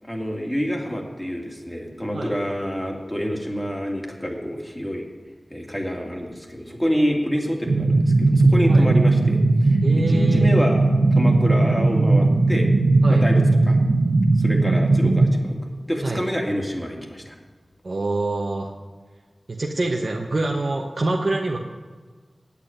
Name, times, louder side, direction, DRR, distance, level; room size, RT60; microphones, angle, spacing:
voice 1, 0.0-5.0 5.5-10.9 11.1-12.7 13.1-13.8 14.4-15.6 15.9-17.3, equal, 10° left, 0 dB, 2.6 m, -27 dB
sound 1, 7.7-15.3, right 2 dB, 85° right, 1.2 m, -18 dB
voice 2, 9.8-10.4 13.0-13.2 14.6-14.8 16.0-16.2 17.8-18.7 19.5-21.6, right 2 dB, 60° right, 0 dB, 1.1 m, -25 dB
8.6 x 8.3 x 8.9 m, 1.4 s
cardioid pair, 45°, 0 cm